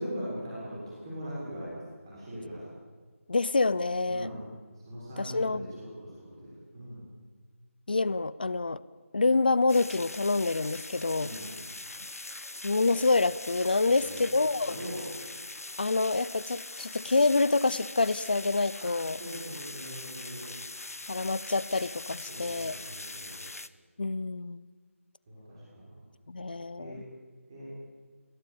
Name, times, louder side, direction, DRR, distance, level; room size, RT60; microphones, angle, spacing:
voice 1, 0.0-2.7 4.1-4.4 4.8-7.1 11.2-11.5 13.8-14.3 14.6-15.0 18.8-18.9 19.2-20.5 22.3-23.4 25.3-26.0 26.8-27.0 27.5-27.7, equal, 20° right, -6 dB, 6.9 m, -41 dB
voice 2, 3.3-4.3 5.2-5.6 7.9-8.8 9.1-11.4 12.6-14.8 15.8-19.2 21.1-22.7 24.0-24.7 26.3-27.0, left 3 dB, 40° left, 18 dB, 0.7 m, -27 dB
sound 1, 9.7-23.7, left 2 dB, 80° left, 1.3 m, -42 dB
29.5 x 17.0 x 8.8 m, 1.5 s
figure-of-eight pair, 175°, 8 cm